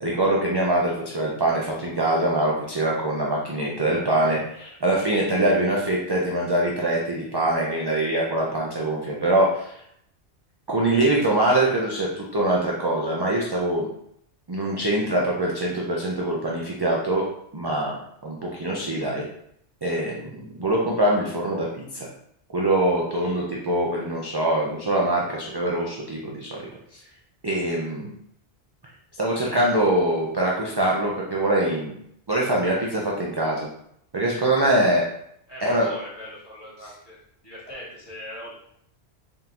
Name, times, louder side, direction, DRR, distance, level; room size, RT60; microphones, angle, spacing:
voice 1, 0.0-9.8 10.7-13.9 14.5-17.2 17.5-18.0 18.2-19.2 19.8-22.1 22.5-27.0 27.4-28.1 29.2-32.0 32.3-33.7 34.1-35.0 35.6-35.9, right 1 dB, 35° right, -3 dB, 0.4 m, -23 dB
voice 2, 35.5-37.2 37.4-38.6, equal, 20° left, -9 dB, 1.8 m, -40 dB
3.7 x 3.7 x 2.9 m, 0.72 s
omnidirectional pair, 1.2 m